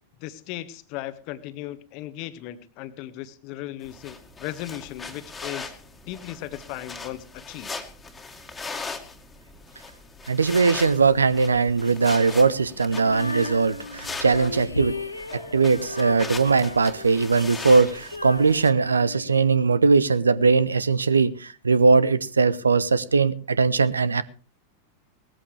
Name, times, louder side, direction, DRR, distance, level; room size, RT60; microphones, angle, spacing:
voice 1, 0.2-5.7 6.0-7.7, left 14 dB, 45° left, 1.2 m, -37 dB
sound 1, 3.8-18.7, left 4 dB, 15° left, 2.0 m, -39 dB
voice 2, 10.3-15.0 15.3-24.2, right 4 dB, 75° right, 0.8 m, -20 dB
Female singing, 12.9-20.0, left 2 dB, 85° left, 1.0 m, -36 dB
19.5 x 14.0 x 3.3 m
figure-of-eight pair, 90°, 0 cm